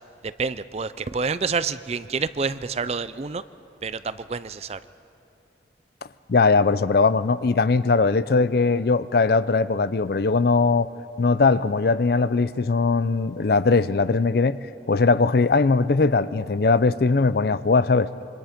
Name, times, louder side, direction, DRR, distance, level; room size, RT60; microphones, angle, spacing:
voice 1, 0.2-3.4 3.8-4.8, right 5 dB, 35° right, 0.4 m, -28 dB
voice 2, 6.3-10.9 11.2-14.6 14.9-18.1, left 4 dB, 55° left, 0.5 m, -20 dB
26.5 x 24.0 x 5.1 m
head